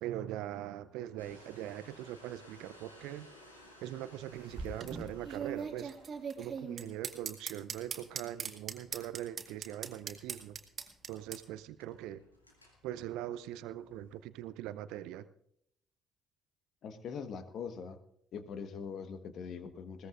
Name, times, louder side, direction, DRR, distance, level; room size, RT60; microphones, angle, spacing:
voice 1, 0.0-3.3 3.8-5.9 6.4-10.6 11.1-12.2 12.8-15.3, right 12 dB, 65° right, 15 dB, 0.6 m, -41 dB
Domestic sounds home sounds, 1.2-14.3, left 1 dB, 90° left, 2.3 m, -60 dB
sound 1, 4.3-11.4, right 6 dB, 40° right, 2.0 m, -40 dB
voice 2, 16.8-18.0 18.3-20.1, left 6 dB, 50° left, 10 dB, 1.5 m, -42 dB
20.5 x 17.5 x 2.6 m, 0.70 s
figure-of-eight pair, 50°, 0 cm